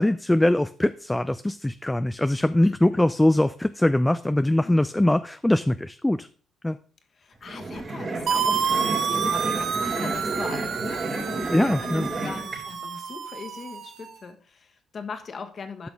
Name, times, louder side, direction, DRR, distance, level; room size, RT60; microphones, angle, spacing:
voice 1, 0.0-6.3 6.6-6.8 11.5-12.1, left 1 dB, 10° left, 11 dB, 0.4 m, -22 dB
voice 2, 2.6-3.0 4.6-4.8 7.2-15.9, left 5 dB, 50° left, 6 dB, 1.4 m, -40 dB
sound 1, 7.4-12.6, right 2 dB, 45° right, 3.9 m, -31 dB
sound 2, 8.3-14.0, right 7 dB, 60° right, 0.8 m, -29 dB
10.5 x 6.0 x 3.5 m, 0.40 s
supercardioid pair, 60°, 0 cm